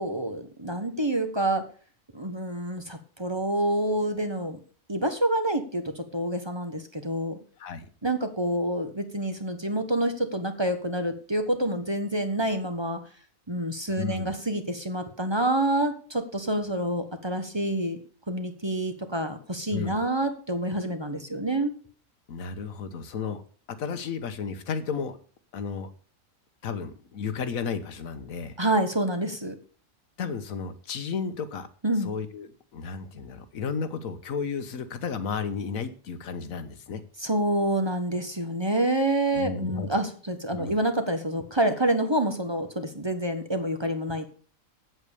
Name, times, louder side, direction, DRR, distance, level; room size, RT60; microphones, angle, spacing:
voice 1, 0.0-1.6 2.1-4.6 4.9-7.4 8.0-13.0 13.5-18.0 18.3-21.7 28.6-29.5 31.8-32.1 37.2-44.3, right 1 dB, 20° right, 7 dB, 1.2 m, -27 dB
voice 2, 14.0-14.3 19.7-19.9 22.3-23.4 23.8-25.2 25.5-25.9 26.6-28.6 30.2-31.7 32.0-37.0 39.3-40.0 40.5-40.7, left 5 dB, 90° left, 10 dB, 1.5 m, -33 dB
8.8 x 8.0 x 6.8 m, 0.42 s
omnidirectional pair, 1.4 m